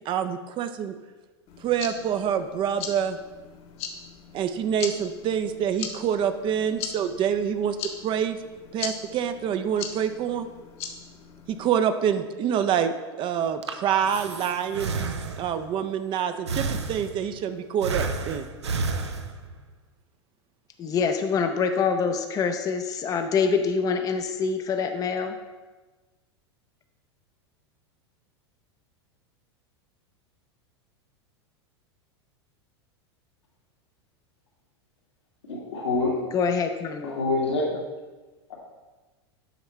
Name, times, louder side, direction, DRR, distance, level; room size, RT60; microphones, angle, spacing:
voice 1, 0.1-0.9 1.6-3.2 4.3-7.8 8.0-8.4 8.7-10.5 11.5-18.5, right 8 dB, 35° right, 9 dB, 0.5 m, -26 dB
sound 1, 1.5-11.7, left 6 dB, 45° left, 0.9 m, -39 dB
Breathing, 13.4-15.7 16.5-17.4 17.8-19.6, right 4 dB, 85° right, 0.5 m, -31 dB
voice 2, 20.8-25.4 36.3-37.2, left 5 dB, 25° left, 6 dB, 0.5 m, -25 dB
voice 3, 35.5-36.3 37.0-37.7 38.5-38.6, left 3 dB, 85° left, -4 dB, 2.0 m, -26 dB
7.9 x 5.5 x 3.1 m, 1.3 s
hypercardioid pair, 95°, 14 cm